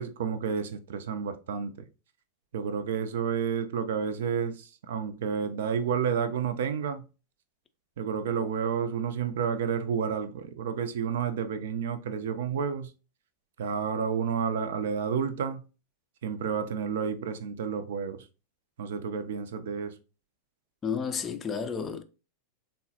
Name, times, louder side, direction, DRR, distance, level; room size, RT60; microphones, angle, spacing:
voice 1, 0.0-1.8 2.5-7.0 8.0-12.9 13.6-15.6 16.2-18.3 18.8-20.0, right 7 dB, 60° right, 0.4 m, -30 dB
voice 2, 20.8-22.0, left 6 dB, 20° left, 0.4 m, -31 dB
3.6 x 2.0 x 2.7 m
figure-of-eight pair, 90°, 0 cm